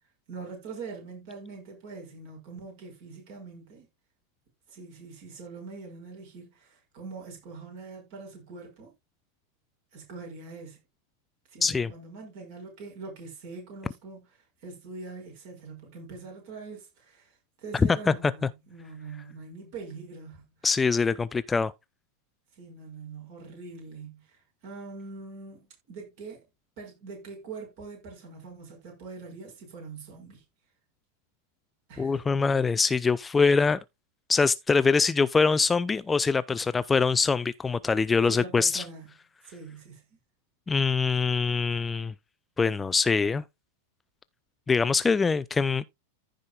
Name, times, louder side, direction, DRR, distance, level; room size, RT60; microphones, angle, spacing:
voice 1, 0.3-3.9 4.7-8.9 9.9-10.8 11.5-14.3 14.6-20.4 22.5-26.4 26.8-30.4 31.9-32.2 38.2-39.1 39.4-40.2, right 4 dB, 50° right, 5.6 m, -43 dB
voice 2, 11.6-11.9 17.7-18.1 20.6-21.7 32.0-33.8 34.3-38.8 40.7-42.1 42.6-43.4 44.7-45.8, left 4 dB, 15° left, 0.4 m, -24 dB
15.0 x 5.1 x 2.3 m
figure-of-eight pair, 90°, 0 cm